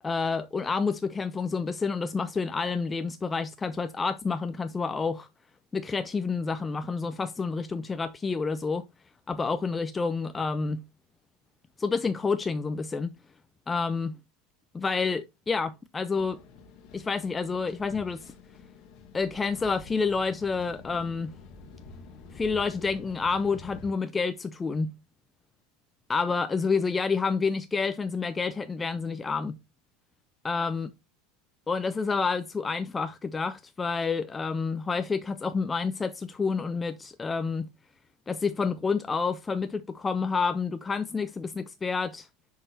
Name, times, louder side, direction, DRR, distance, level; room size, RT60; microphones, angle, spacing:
voice 1, 0.0-5.3 5.7-8.9 9.3-10.8 11.8-13.1 13.7-14.1 14.7-16.4 16.9-18.3 19.1-21.3 22.3-24.9 26.1-29.6 30.4-30.9 31.7-37.7 38.3-42.3, left 4 dB, 15° left, 0.4 m, -29 dB
sound 1, 16.1-23.9, left 4 dB, 55° left, 1.3 m, -48 dB
6.1 x 5.5 x 2.8 m
supercardioid pair, 130°, 0 cm